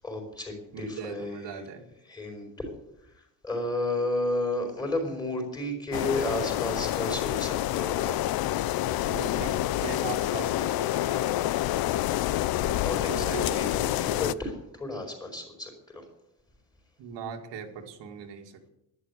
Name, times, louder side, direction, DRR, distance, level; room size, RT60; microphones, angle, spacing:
voice 1, 0.0-1.6 2.0-2.7 3.1-8.2 8.6-8.7 12.6-16.1, left 1 dB, 10° left, 3 dB, 4.4 m, -33 dB
voice 2, 0.7-1.8 9.0-9.6 9.8-11.5 13.1-13.6 17.0-18.5, right 6 dB, 80° right, 3 dB, 2.3 m, -39 dB
sound 1, 5.9-14.3, left 14 dB, 60° left, 0.6 m, -28 dB
11.5 x 11.5 x 8.3 m, 0.83 s
cardioid pair, 165°, 42 cm